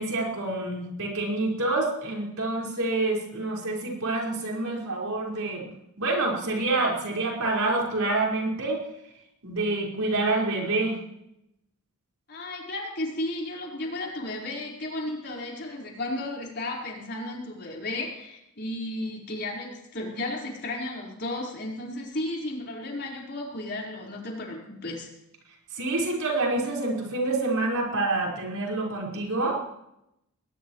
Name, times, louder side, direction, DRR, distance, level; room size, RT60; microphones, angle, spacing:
voice 1, 0.0-5.7 6.0-8.8 9.4-11.0 25.7-29.6, right 2 dB, 70° right, -2 dB, 4.9 m, -27 dB
voice 2, 12.3-25.1, left 1 dB, 50° left, -2 dB, 4.5 m, -34 dB
21.0 x 19.5 x 3.2 m, 0.81 s
head